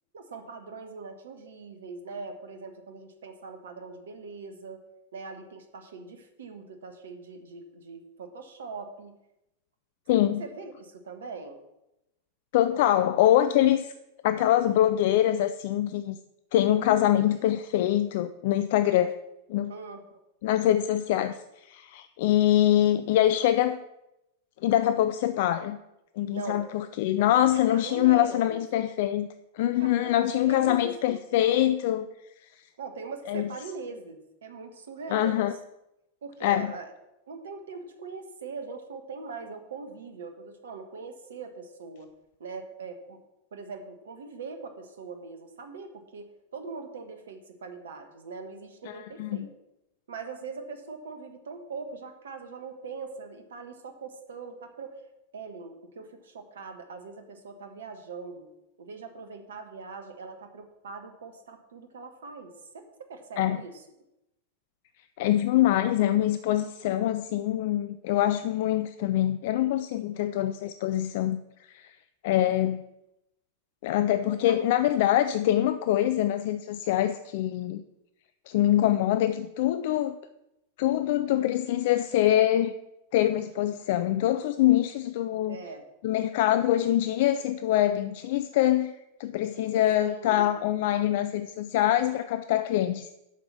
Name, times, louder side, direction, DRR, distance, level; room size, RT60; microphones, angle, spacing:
voice 1, 0.1-4.8 5.1-9.2 10.1-11.6 19.7-20.2 26.3-26.7 27.5-28.6 29.8-30.1 30.5-31.6 32.8-35.6 36.2-36.9 37.3-42.1 42.4-43.2 43.5-49.5 50.1-55.0 55.3-58.5 58.8-63.8 74.3-74.6 85.5-85.9 90.0-90.6, right 4 dB, 65° right, 7 dB, 1.4 m, -41 dB
voice 2, 10.1-10.4 12.5-13.9 14.2-16.2 16.5-19.2 19.5-19.7 20.4-23.8 24.6-25.8 26.2-29.3 29.5-32.1 33.3-33.5 35.1-35.5 36.4-36.7 48.9-49.4 63.4-63.6 65.2-71.4 71.7-71.9 72.2-72.8 73.8-77.8 78.5-80.2 80.8-82.7 83.1-85.6 86.0-88.9 89.2-93.1, left 12 dB, 50° left, 11 dB, 0.4 m, -24 dB
8.1 x 6.0 x 7.1 m, 0.89 s
figure-of-eight pair, 90°, 0 cm